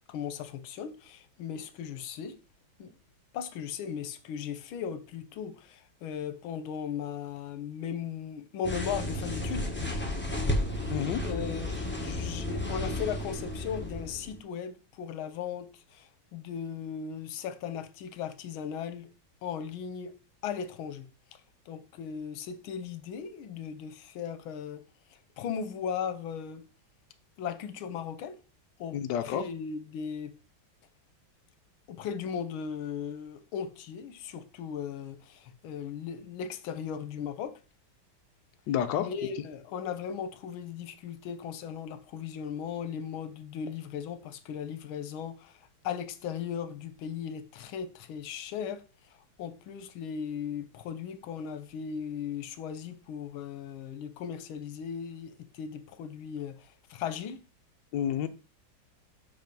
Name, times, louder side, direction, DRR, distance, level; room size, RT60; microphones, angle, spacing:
voice 1, 0.1-2.4 2.8-2.9 3.3-9.7 11.2-19.1 19.4-20.1 20.4-21.0 21.7-24.8 25.4-26.6 27.4-28.4 28.8-30.3 31.9-37.6 39.0-45.6 45.8-48.8 49.4-57.4, left 7 dB, 85° left, 1.6 m, -37 dB
sound 1, 8.6-14.4, left 1 dB, 10° left, 0.8 m, -33 dB
voice 2, 10.9-11.2 28.9-29.4 38.7-39.1 57.9-58.3, left 9 dB, 70° left, 1.3 m, -29 dB
5.6 x 5.4 x 5.3 m
omnidirectional pair, 2.2 m